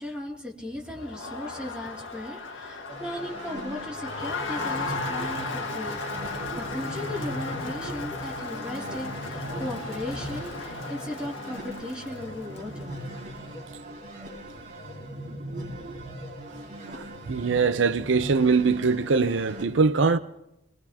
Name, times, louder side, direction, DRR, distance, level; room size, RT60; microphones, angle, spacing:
voice 1, 0.0-12.9, left 1 dB, 5° right, 2.7 m, -37 dB
Crowd, 0.9-13.4, left 3 dB, 85° left, 1.8 m, -36 dB
sound 1, 2.9-19.7, right 1 dB, 45° right, 4.6 m, -39 dB
voice 2, 16.9-20.2, right 4 dB, 75° right, 0.6 m, -22 dB
24.0 x 19.5 x 2.9 m
head